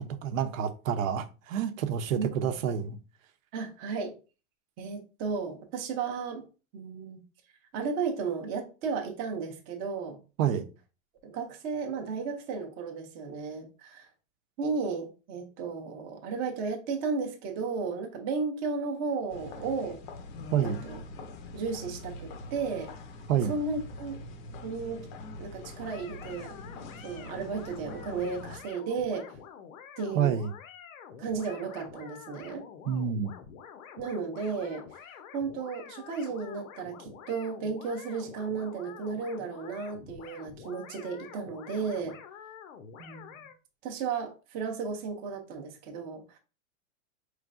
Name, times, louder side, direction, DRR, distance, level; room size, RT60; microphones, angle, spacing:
voice 1, 0.0-3.0 10.4-10.6 20.5-20.8 23.3-23.5 30.1-30.5 32.9-33.3, right 8 dB, 80° right, 0.7 m, -28 dB
voice 2, 2.2-2.5 3.5-4.1 4.8-6.4 6.7-7.2 7.7-10.2 11.2-14.1 14.6-20.0 20.6-21.0 21.5-22.9 23.5-24.2 24.6-25.1 25.4-26.6 27.0-29.3 30.0-30.3 31.2-32.7 34.0-34.9 35.3-42.2 43.0-43.4 43.8-46.4, right 5 dB, 20° right, 0.5 m, -34 dB
sound 1, 19.3-28.6, left 2 dB, 40° left, 0.5 m, -43 dB
sound 2, 25.7-43.6, left 7 dB, 85° left, 0.8 m, -48 dB
4.7 x 3.2 x 2.4 m
supercardioid pair, 165°, 39 cm